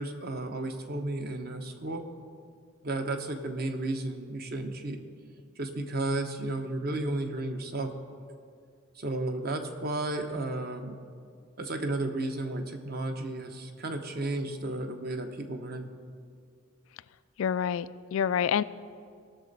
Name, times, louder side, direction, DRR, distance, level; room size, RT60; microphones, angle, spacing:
voice 1, 0.0-2.1 2.8-5.0 5.6-7.9 9.0-11.0 11.6-15.9, right 2 dB, 50° right, 6 dB, 0.8 m, -33 dB
voice 2, 17.4-18.6, left 8 dB, 90° left, 16 dB, 0.3 m, -27 dB
17.5 x 6.7 x 4.0 m, 2.2 s
head